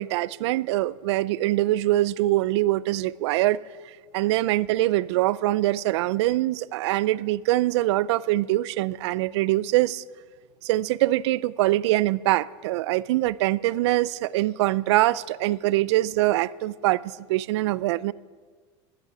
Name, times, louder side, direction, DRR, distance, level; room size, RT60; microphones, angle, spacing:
voice 1, 0.0-3.6 4.1-10.0 10.6-18.1, right 16 dB, 80° right, 0.4 m, -23 dB
12.0 x 8.3 x 8.9 m
supercardioid pair, 135°, 14 cm